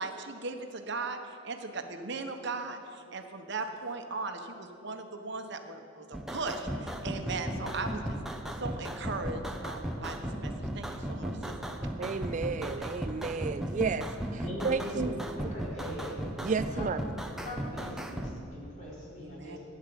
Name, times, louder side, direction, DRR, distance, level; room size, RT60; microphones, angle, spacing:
voice 1, 0.0-11.5 19.2-19.6, right 3 dB, 55° right, 6 dB, 1.2 m, -38 dB
sound 1, 6.1-18.3, equal, ahead, 0.9 m, -36 dB
voice 2, 12.0-15.1 15.4-15.5 16.4-17.0, right 5 dB, 35° right, 13 dB, 0.3 m, -32 dB
voice 3, 14.4-16.2 16.7-16.9 17.4-19.6, equal, 35° left, -5 dB, 4.3 m, -41 dB
15.0 x 10.5 x 7.9 m, 2.8 s
head